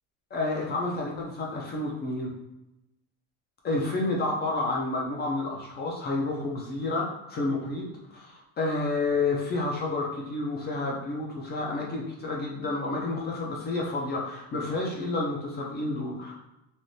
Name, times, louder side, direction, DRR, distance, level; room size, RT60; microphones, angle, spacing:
voice 1, 0.3-2.3 3.6-16.3, left 2 dB, 25° left, -2 dB, 0.4 m, -30 dB
3.3 x 2.4 x 2.6 m, 0.92 s
cardioid pair, 165°, 41 cm